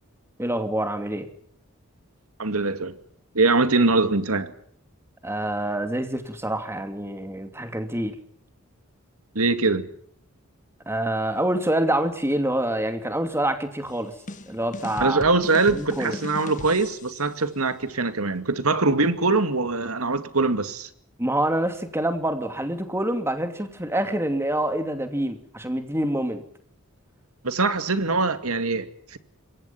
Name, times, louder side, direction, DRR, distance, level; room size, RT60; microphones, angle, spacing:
voice 1, 0.4-1.3 5.2-8.2 10.9-14.1 14.5-15.2 15.7-16.2 21.2-26.4, right 1 dB, 10° right, 2.7 m, -26 dB
voice 2, 2.4-3.0 3.3-4.5 9.3-9.9 15.0-20.9 27.4-29.2, right 3 dB, 85° right, 2.3 m, -23 dB
sound 1, 13.9-17.4, left 1 dB, 35° left, 1.4 m, -38 dB
27.5 x 23.0 x 5.8 m
head